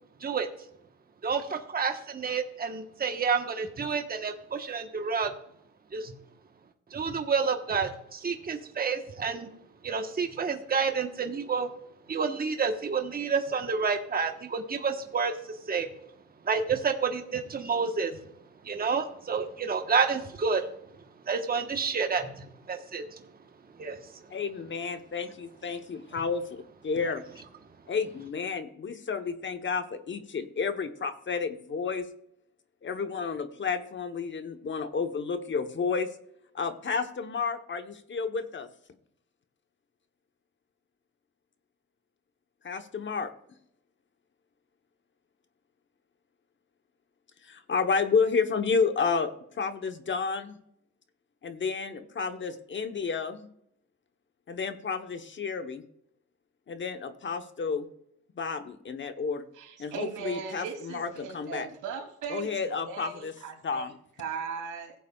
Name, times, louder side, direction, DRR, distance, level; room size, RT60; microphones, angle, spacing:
voice 1, 1.2-5.3 5.9-6.1 6.9-9.5 9.8-11.7 12.1-15.3 15.7-15.9 16.5-18.2 18.6-20.6 21.3-23.0 23.8-24.0, right 5 dB, 30° right, 5 dB, 1.1 m, -29 dB
voice 2, 24.3-26.5 26.8-27.3 27.9-32.1 32.8-36.1 36.5-38.7 42.6-43.3 47.4-50.5 51.4-53.5 54.5-55.8 56.7-57.9 58.4-59.5 59.8-61.7 62.3-63.3 63.6-63.9, left 5 dB, 40° left, 9 dB, 1.0 m, -31 dB
voice 3, 59.5-63.9 64.2-64.9, right 6 dB, 85° right, 1 dB, 2.7 m, -38 dB
16.0 x 8.2 x 2.3 m, 0.73 s
cardioid pair, 90°, 30 cm